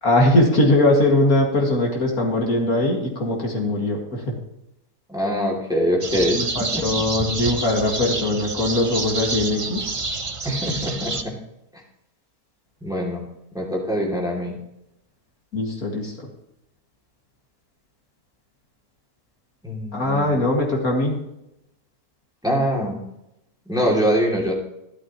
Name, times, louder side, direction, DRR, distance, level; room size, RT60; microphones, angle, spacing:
voice 1, 0.0-4.3 6.3-9.9 15.5-16.1 19.9-21.2, left 1 dB, 60° left, -1 dB, 2.6 m, -21 dB
voice 2, 5.1-6.9 10.4-11.3 12.8-13.2 13.5-14.5 19.6-20.4 22.4-23.0 23.7-24.5, equal, ahead, -2 dB, 2.6 m, -23 dB
sound 1, 6.0-11.2, right 3 dB, 35° right, 0.5 m, -28 dB
13.0 x 12.0 x 3.0 m, 0.84 s
omnidirectional pair, 1.8 m